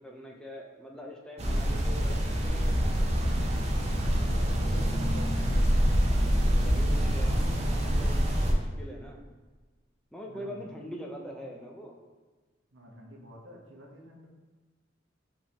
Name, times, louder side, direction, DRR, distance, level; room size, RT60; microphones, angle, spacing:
voice 1, 0.0-3.1 6.5-9.2 10.1-12.0, equal, 5° left, -1 dB, 0.5 m, -43 dB
sound 1, 1.4-8.5, equal, 35° right, 0.6 m, -26 dB
voice 2, 4.3-5.8 10.3-10.6 12.7-14.3, equal, 90° right, -2 dB, 1.0 m, -48 dB
5.1 x 3.5 x 2.9 m, 1.3 s
head